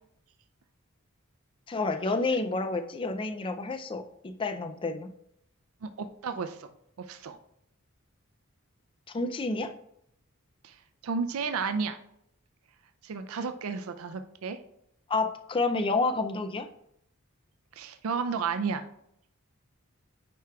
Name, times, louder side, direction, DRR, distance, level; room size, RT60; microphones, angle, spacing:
voice 1, 1.7-5.1 9.1-9.7 15.1-16.7, left 3 dB, 25° left, 9 dB, 0.4 m, -29 dB
voice 2, 5.8-6.7 7.0-7.4 10.6-12.0 13.0-14.6 17.7-18.9, right 5 dB, 80° right, 9 dB, 0.4 m, -32 dB
9.1 x 4.7 x 2.3 m, 0.74 s
head